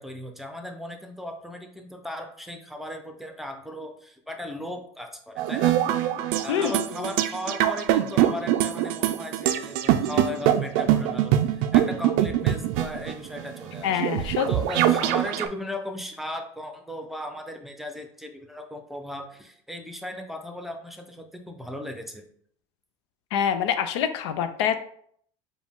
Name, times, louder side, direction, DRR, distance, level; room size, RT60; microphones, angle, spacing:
voice 1, 0.0-5.8 6.4-22.3, left 1 dB, ahead, 5 dB, 0.7 m, -37 dB
sound 1, 5.4-15.5, right 12 dB, 70° right, 0.4 m, -24 dB
voice 2, 6.5-7.1 13.8-14.5 23.3-24.8, left 8 dB, 85° left, 10 dB, 0.4 m, -26 dB
4.9 x 2.3 x 3.6 m, 0.62 s
supercardioid pair, 90°, 14 cm